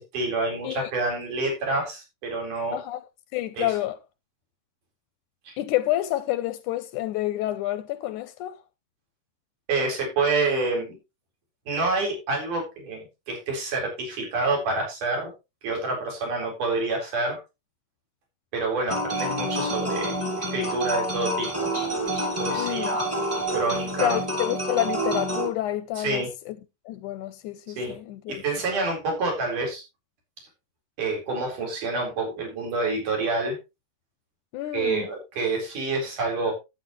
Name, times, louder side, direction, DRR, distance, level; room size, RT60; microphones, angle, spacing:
voice 1, 0.1-2.8 3.6-3.8 5.5-5.6 9.7-11.0 11.7-15.3 15.6-17.4 18.5-21.7 22.4-23.0 23.5-24.2 26.0-26.3 27.8-28.0 28.3-29.8 31.0-33.6 34.7-36.5, right 3 dB, 70° right, 5.7 m, -27 dB
voice 2, 2.7-3.0 3.3-4.0 5.6-8.6 22.6-23.0 24.0-26.6 26.9-28.4 34.5-35.1, left 14 dB, 80° left, 2.0 m, -28 dB
sound 1, 18.9-25.5, right 1 dB, 5° right, 1.4 m, -28 dB
11.5 x 9.4 x 3.1 m
omnidirectional pair, 3.8 m